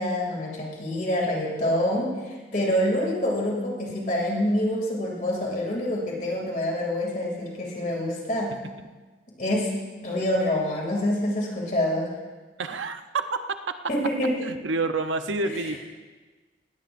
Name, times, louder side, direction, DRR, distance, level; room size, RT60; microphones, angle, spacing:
voice 1, 0.0-8.5 9.4-9.7 10.0-12.1 13.9-14.4 15.5-15.6, left 1 dB, 45° left, -2 dB, 2.7 m, -26 dB
voice 2, 12.6-13.0 14.4-15.8, right 2 dB, 90° right, 8 dB, 0.8 m, -28 dB
19.5 x 15.5 x 2.6 m, 1.3 s
head